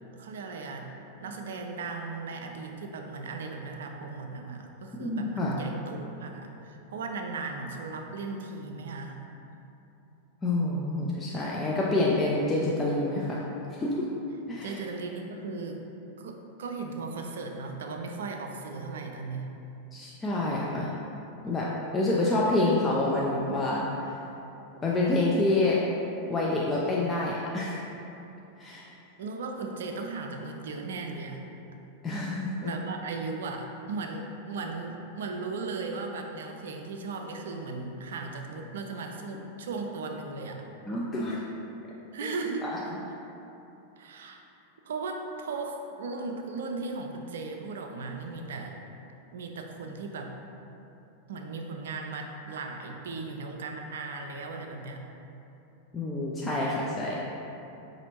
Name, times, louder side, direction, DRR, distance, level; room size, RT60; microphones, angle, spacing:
voice 1, 0.1-0.9 1.2-9.2 14.6-15.8 16.2-19.5 29.2-31.4 32.6-40.6 42.1-42.7 44.0-44.4 44.9-48.7 49.3-50.3 51.3-55.0, right 3 dB, 60° right, 3 dB, 0.3 m, -37 dB
voice 2, 5.0-5.5 10.4-13.4 13.7-14.1 14.5-14.8 19.9-20.9 21.4-21.7 21.9-24.2 24.8-25.8 26.3-27.8 28.6-28.8 32.0-32.7 40.9-41.4 42.2-42.4 42.6-42.8 55.9-57.2, left 2 dB, 20° left, -5 dB, 0.4 m, -27 dB
4.9 x 2.6 x 2.9 m, 3.0 s
figure-of-eight pair, 90°, 0 cm